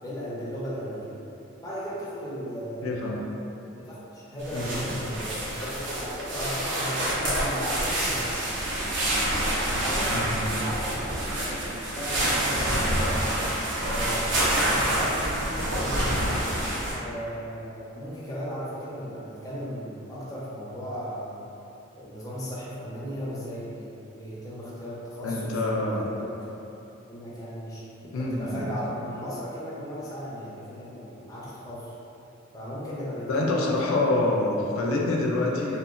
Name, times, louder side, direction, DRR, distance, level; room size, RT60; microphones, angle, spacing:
voice 1, 0.0-1.1 1.6-2.9 3.9-8.3 9.6-13.4 13.9-16.4 17.0-21.4 21.9-26.7 27.1-27.8 28.2-31.9 32.5-34.0, equal, 15° left, -8 dB, 0.4 m, -36 dB
voice 2, 2.8-3.2 4.5-5.0 10.1-10.6 25.2-26.0 28.1-28.7 33.3-35.8, left 2 dB, 80° left, -2 dB, 0.3 m, -26 dB
sound 1, 4.4-17.0, right 1 dB, 60° right, 0.5 m, -27 dB
2.9 x 2.1 x 2.4 m, 2.9 s
head